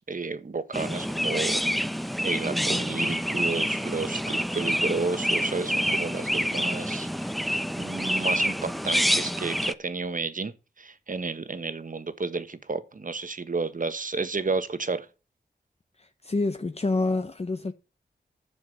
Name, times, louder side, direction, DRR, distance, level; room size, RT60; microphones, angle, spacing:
voice 1, 0.0-1.6 2.2-15.1, right 4 dB, 50° right, 1.3 m, -32 dB
Chirp tweet, 0.7-9.7, equal, ahead, 0.7 m, -27 dB
voice 2, 16.0-17.7, left 3 dB, 35° left, 0.9 m, -27 dB
9.9 x 7.1 x 6.2 m
cardioid pair, 60°, 17 cm